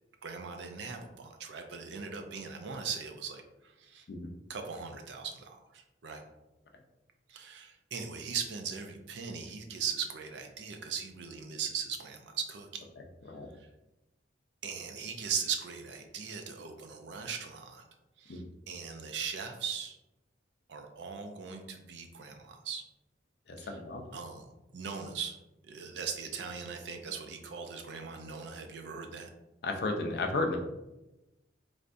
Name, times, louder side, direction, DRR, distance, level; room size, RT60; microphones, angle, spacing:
voice 1, 0.2-4.1 4.5-6.2 7.3-12.8 14.6-17.8 18.2-20.0 20.7-22.8 23.6-23.7 24.1-25.4 25.7-29.3, right 6 dB, 70° right, 5 dB, 0.4 m, -39 dB
voice 2, 13.0-13.5 18.3-18.4 23.5-24.0 29.6-30.6, left 2 dB, 55° left, 3 dB, 0.4 m, -34 dB
3.3 x 2.5 x 2.5 m, 0.98 s
head